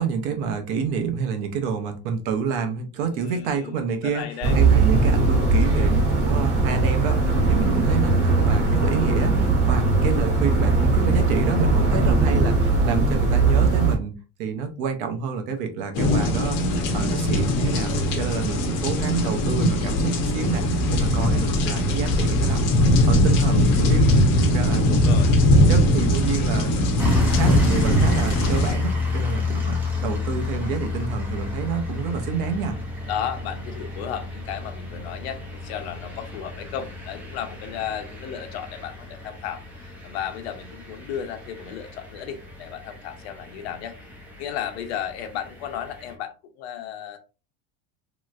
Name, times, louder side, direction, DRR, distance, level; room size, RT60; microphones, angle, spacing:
voice 1, 0.0-16.6 16.9-22.7 23.1-25.2 25.7-26.7 27.0-32.8, right 6 dB, 50° right, 6 dB, 0.7 m, -28 dB
voice 2, 3.1-3.8 4.0-4.6 24.8-25.3 33.1-43.9 44.4-47.2, left 9 dB, 70° left, 7 dB, 0.8 m, -34 dB
sound 1, 4.4-14.0, right 3 dB, 30° right, 1.2 m, -19 dB
sound 2, 15.9-28.7, left 1 dB, 35° left, 0.7 m, -20 dB
sound 3, 27.0-46.1, left 3 dB, 5° right, 0.4 m, -31 dB
3.1 x 3.0 x 2.4 m, 0.32 s
supercardioid pair, 165°, 33 cm